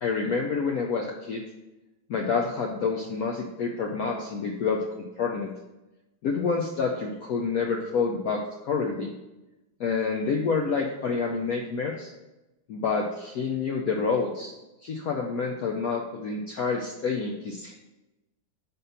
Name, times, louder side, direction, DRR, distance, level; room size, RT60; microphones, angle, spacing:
voice 1, 0.0-1.4 2.1-4.8 5.2-5.5 6.2-9.1 9.8-12.1 12.7-14.5 14.8-17.7, left 5 dB, 85° left, 1 dB, 0.8 m, -28 dB
5.3 x 4.1 x 5.5 m, 1.0 s
omnidirectional pair, 2.2 m